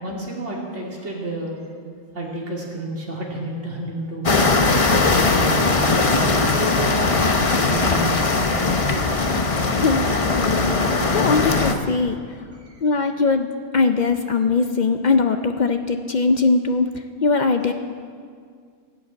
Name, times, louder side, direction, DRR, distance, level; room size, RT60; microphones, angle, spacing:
voice 1, 0.0-1.6 2.1-4.4 4.9-9.0 12.6-12.8, right 1 dB, 55° right, -3 dB, 2.9 m, -30 dB
sound 1, 4.2-11.7, left 3 dB, 30° left, 0.7 m, -19 dB
voice 2, 9.7-12.2 12.8-13.5 13.7-16.9 17.2-17.7, left 4 dB, 90° left, 7 dB, 0.4 m, -21 dB
17.0 x 6.9 x 8.7 m, 2.1 s
omnidirectional pair, 1.5 m